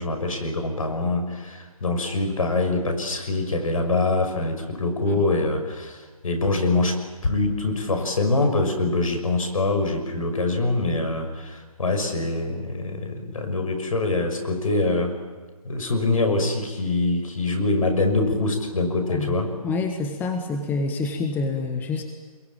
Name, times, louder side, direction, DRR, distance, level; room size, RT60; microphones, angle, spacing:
voice 1, 0.0-7.0 7.2-15.1 15.6-19.5, left 2 dB, 65° left, 6 dB, 6.0 m, -24 dB
voice 2, 19.6-22.0, left 3 dB, 10° left, 4 dB, 1.5 m, -27 dB
26.5 x 22.5 x 9.0 m, 1.3 s
figure-of-eight pair, 140°, 19 cm